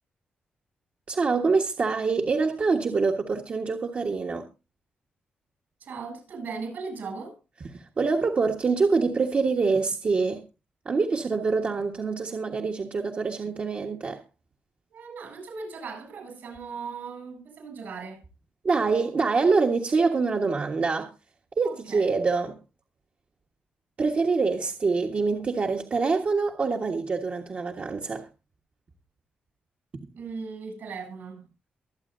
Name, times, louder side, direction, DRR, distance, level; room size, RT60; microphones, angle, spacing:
voice 1, 1.1-4.5 7.7-10.4 10.8-14.2 18.6-21.1 21.6-22.6 24.0-28.3, right 4 dB, 45° right, 1.4 m, -25 dB
voice 2, 5.8-7.4 14.9-18.2 21.6-22.1 30.2-31.5, right 5 dB, 80° right, 7.8 m, -38 dB
24.0 x 8.2 x 2.6 m
cardioid pair, 95°, 3 cm